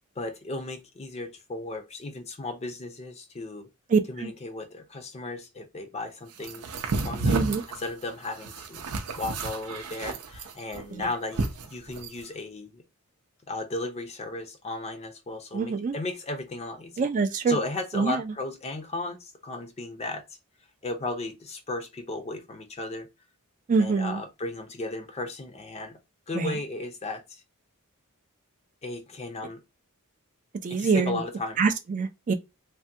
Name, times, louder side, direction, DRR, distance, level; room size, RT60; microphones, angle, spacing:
voice 1, 0.2-3.7 4.1-6.7 7.0-8.8 9.2-11.4 11.7-12.8 13.5-17.1 17.5-20.2 20.8-23.1 23.8-26.0 26.3-27.4 28.8-29.6 30.7-31.6, left 2 dB, 30° left, 0.5 m, -35 dB
voice 2, 3.9-4.3 7.3-7.6 10.9-11.0 15.5-15.9 17.0-17.6 17.9-18.2 23.7-24.2 26.4-26.5 30.6-31.2 31.6-32.3, right 5 dB, 35° right, 0.3 m, -25 dB
sound 1, 6.4-12.2, right 3 dB, 85° right, 0.6 m, -31 dB
3.4 x 2.1 x 2.7 m
head